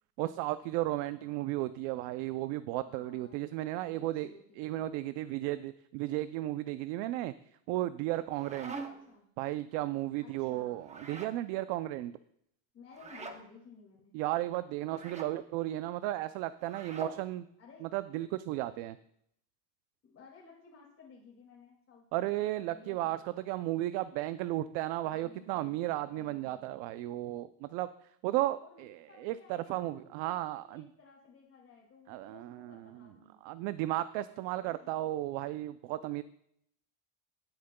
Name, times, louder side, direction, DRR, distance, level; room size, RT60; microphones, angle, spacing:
voice 1, 0.2-4.3 4.6-7.3 7.7-8.8 9.4-12.1 14.1-17.5 17.8-19.0 22.1-23.2 23.5-27.9 28.2-30.9 32.1-32.9 33.4-36.2, right 15 dB, 65° right, 13 dB, 0.5 m, -34 dB
voice 2, 1.1-1.4 2.8-4.8 9.1-9.3 10.2-11.0 12.7-14.1 17.6-17.9 20.0-22.3 22.7-23.2 25.0-26.8 28.6-33.4 34.5-34.9, left 5 dB, 30° left, -4 dB, 2.4 m, -57 dB
sound 1, 8.1-9.2 10.8-11.4 12.9-13.4 14.9-15.3 16.6-17.2, right 3 dB, 15° right, 0.8 m, -44 dB
17.5 x 8.6 x 2.2 m, 0.72 s
cardioid pair, 145°, 48 cm